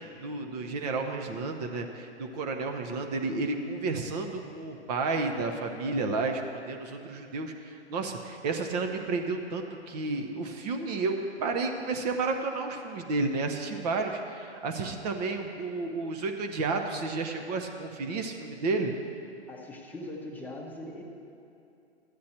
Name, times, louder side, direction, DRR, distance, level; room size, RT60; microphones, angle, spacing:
voice 1, 0.0-18.9, right 3 dB, 35° right, 4 dB, 0.8 m, -31 dB
voice 2, 19.5-21.0, left 1 dB, 5° left, -2 dB, 0.8 m, -41 dB
13.0 x 9.4 x 4.3 m, 2.6 s
hypercardioid pair, 135°, 35 cm